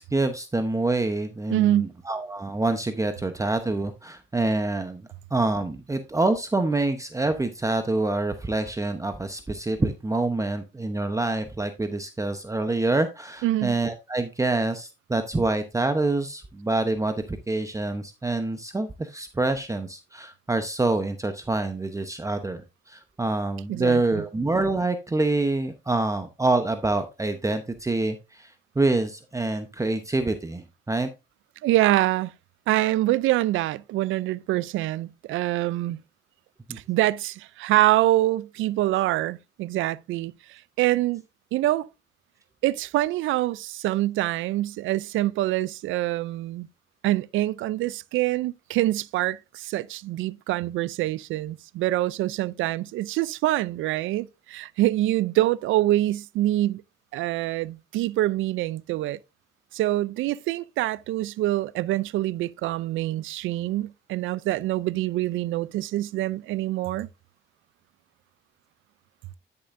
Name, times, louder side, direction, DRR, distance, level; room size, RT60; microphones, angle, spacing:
voice 1, 0.0-5.0 5.3-31.1 36.7-36.8, right 2 dB, 15° right, 0.8 m, -26 dB
voice 2, 1.5-1.9 13.4-13.8 23.7-24.2 31.6-32.3 32.7-36.0 36.7-41.2 41.5-41.9 42.6-46.7 47.0-56.8 57.1-59.2 59.7-67.1, right 15 dB, 85° right, 0.4 m, -25 dB
10.5 x 6.8 x 2.6 m
cardioid pair, 90°, 20 cm